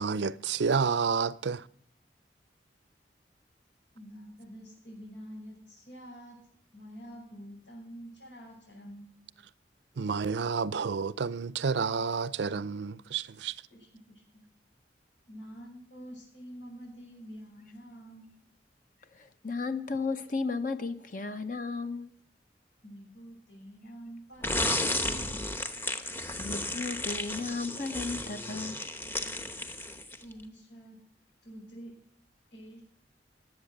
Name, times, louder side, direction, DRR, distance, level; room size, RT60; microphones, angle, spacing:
voice 1, 0.0-1.6 10.0-13.5, right 5 dB, 75° right, 0.5 m, -30 dB
voice 2, 3.9-6.4 6.7-9.1 13.7-14.4 15.3-18.3 22.8-25.4 30.2-31.0 31.4-31.9 32.5-32.8, equal, 85° left, 6.5 m, -47 dB
voice 3, 19.0-22.1 26.1-28.9, left 4 dB, 50° left, 0.8 m, -35 dB
sound 1, 24.4-30.3, left 1 dB, 15° left, 0.9 m, -33 dB
19.5 x 8.1 x 6.6 m
head